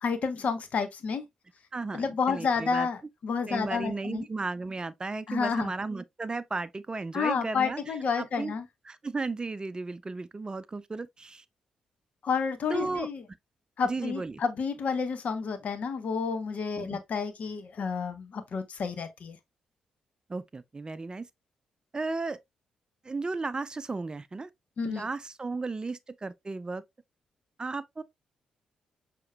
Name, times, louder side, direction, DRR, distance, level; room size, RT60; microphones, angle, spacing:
voice 1, 0.0-1.2 1.9-4.3 5.3-5.7 7.1-8.7 12.2-13.2 13.8-19.4 24.8-25.1, left 5 dB, 60° left, 0.9 m, -30 dB
voice 2, 1.7-2.9 3.5-7.8 8.2-8.5 8.9-11.4 12.7-13.1 13.8-14.4 16.8-17.0 20.3-21.3 21.9-22.4 23.0-24.5 24.8-26.8 27.6-28.0, right 3 dB, 30° right, 0.4 m, -34 dB
6.4 x 2.9 x 2.2 m
hypercardioid pair, 40°, 3 cm